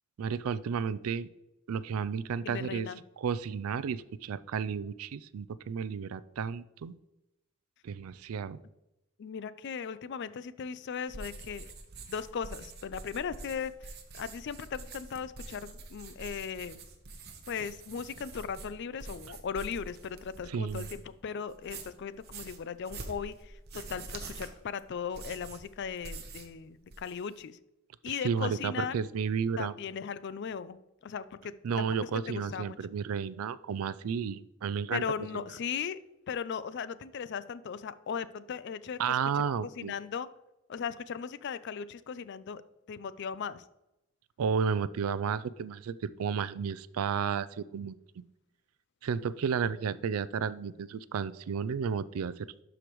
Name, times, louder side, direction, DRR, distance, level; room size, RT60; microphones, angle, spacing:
voice 1, 0.2-1.3 1.7-2.9 3.2-6.9 7.8-8.6 20.5-20.9 28.1-29.7 31.6-35.0 35.3-35.4 39.0-39.9 44.4-48.0 49.0-52.5, right 6 dB, 90° right, 16 dB, 0.4 m, -32 dB
voice 2, 2.4-3.0 9.2-11.7 12.1-16.8 17.5-27.6 28.0-28.9 29.6-31.9 32.3-32.8 34.9-36.0 36.3-39.2 39.8-40.3 40.7-42.6 42.9-43.6, left 6 dB, 55° left, 15 dB, 0.4 m, -38 dB
sound 1, 11.1-21.1 21.5-26.6 26.8-27.4, right 3 dB, 50° right, 1.0 m, -46 dB
12.0 x 5.0 x 3.1 m, 0.91 s
head